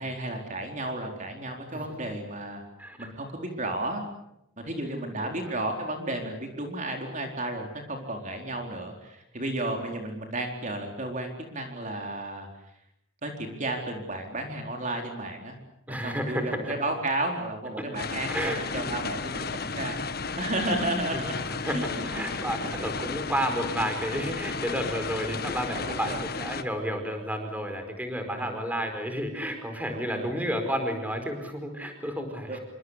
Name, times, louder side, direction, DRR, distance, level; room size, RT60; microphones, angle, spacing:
voice 1, 0.0-2.6 3.0-4.0 4.6-12.5 13.2-15.6 15.9-21.4 21.7-21.9 22.2-22.3 22.6-22.7 25.9-26.2 28.2-28.5 29.9-30.3 32.5-32.6, right 1 dB, 40° right, 3 dB, 4.3 m, -33 dB
voice 2, 4.8-5.5 9.6-9.8 15.9-16.7 17.8-17.9 18.3-19.0 20.6-32.6, equal, 10° right, 6 dB, 4.7 m, -32 dB
sound 1, 17.9-26.6, left 4 dB, 50° left, 1.5 m, -33 dB
27.5 x 25.0 x 8.3 m, 0.80 s
head